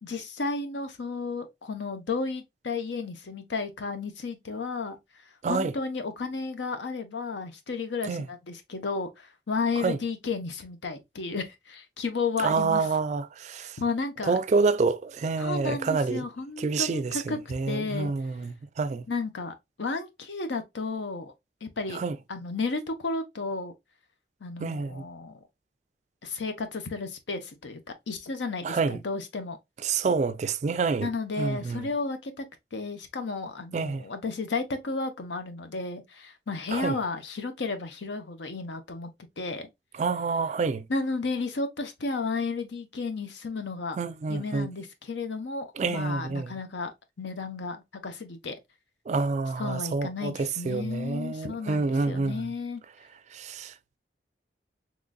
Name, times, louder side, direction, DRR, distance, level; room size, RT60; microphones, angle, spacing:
voice 1, 0.0-5.0 5.5-12.9 13.6-14.4 15.4-18.1 19.1-21.3 21.6-22.0 22.3-23.7 24.4-25.4 26.2-29.6 31.0-32.4 32.7-39.1 39.4-39.7 40.9-44.0 44.3-48.6 49.6-52.8, left 4 dB, 85° left, 0.7 m, -33 dB
voice 2, 12.4-13.8 14.3-16.2 16.6-19.0 21.9-22.2 24.6-25.0 28.6-29.0 29.8-31.1 31.4-31.9 33.7-34.0 36.7-37.0 40.0-40.9 44.0-44.7 45.8-46.5 49.1-52.5 53.3-53.7, right 4 dB, 40° right, 0.3 m, -28 dB
3.8 x 3.1 x 2.3 m
head